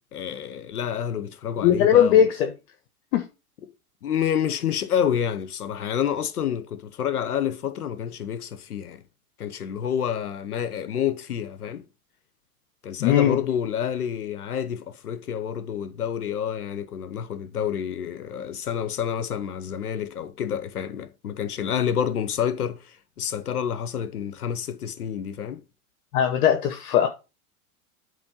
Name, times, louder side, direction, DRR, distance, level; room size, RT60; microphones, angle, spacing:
voice 1, 0.1-2.3 4.0-9.0 9.4-11.8 12.8-25.6, left 8 dB, 85° left, 1.1 m, -28 dB
voice 2, 1.6-2.5 3.1-3.3 13.0-13.4 26.1-27.1, left 9 dB, 65° left, 1.3 m, -19 dB
8.7 x 3.7 x 5.4 m
hypercardioid pair, 95°, 44 cm